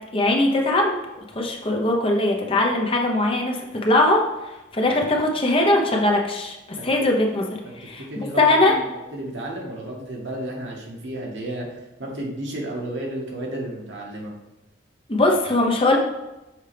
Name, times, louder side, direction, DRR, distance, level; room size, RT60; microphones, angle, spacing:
voice 1, 0.1-0.9 1.3-7.5 7.8-8.0 8.4-8.8 15.1-16.0, left 2 dB, 30° left, 1 dB, 0.9 m, -20 dB
voice 2, 6.8-7.1 7.6-8.8 9.1-11.7 12.0-14.3, right 1 dB, 75° right, -1 dB, 1.5 m, -32 dB
6.6 x 4.4 x 3.4 m, 1.0 s
head